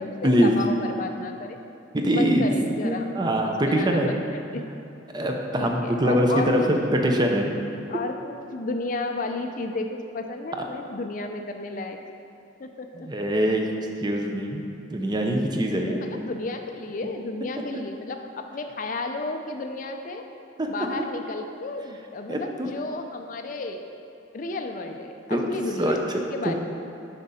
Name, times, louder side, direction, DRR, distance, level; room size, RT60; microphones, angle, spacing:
voice 1, 0.0-1.6 2.1-3.1 3.4-4.6 5.6-6.7 7.9-12.0 12.6-13.3 15.7-20.3 20.7-23.9 24.3-26.0 26.3-26.5, left 3 dB, 45° left, 5 dB, 0.4 m, -33 dB
voice 2, 1.9-2.5 2.8-4.1 5.1-7.5 13.0-13.7 14.0-14.6 14.9-16.0 20.6-20.7 22.3-22.7 25.3-25.5 25.8-26.0 26.5-26.6, equal, 20° right, 2 dB, 0.5 m, -23 dB
8.3 x 5.2 x 4.1 m, 2.7 s
head